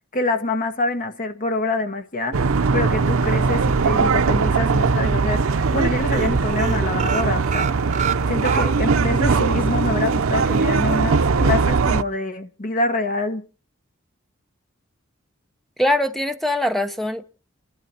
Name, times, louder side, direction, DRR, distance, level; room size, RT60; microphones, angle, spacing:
voice 1, 0.1-7.8 8.3-13.4, left 2 dB, 40° left, 1.5 m, -26 dB
sound 1, 2.3-12.0, right 4 dB, 90° right, 0.6 m, -20 dB
sound 2, 4.3-4.9 5.2-5.4 5.6-5.8 6.1-9.1 9.5-9.6 9.9-10.0, right 7 dB, 35° right, 0.6 m, -29 dB
voice 2, 15.8-17.2, left 1 dB, ahead, 1.0 m, -22 dB
29.5 x 11.5 x 2.9 m
head